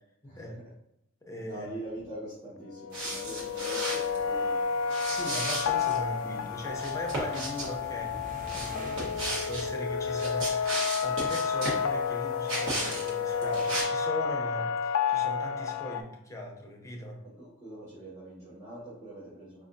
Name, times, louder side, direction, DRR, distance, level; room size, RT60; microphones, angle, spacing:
voice 1, 0.2-0.7 1.2-1.7 5.1-17.2, left 1 dB, 15° left, 0 dB, 0.6 m, -39 dB
voice 2, 1.4-4.7 5.1-5.3 17.2-19.6, right 1 dB, 15° right, -12 dB, 1.4 m, -44 dB
sound 1, 2.7-16.0, left 6 dB, 90° left, 0.3 m, -31 dB
sound 2, 2.9-4.2 4.9-6.0 6.7-7.7 8.5-9.7 10.1-11.8 12.5-13.1 13.4-13.8, right 1 dB, 65° right, 1.1 m, -34 dB
sound 3, 6.2-11.1, right 1 dB, 40° right, 0.5 m, -47 dB
4.8 x 2.4 x 2.6 m, 0.80 s
head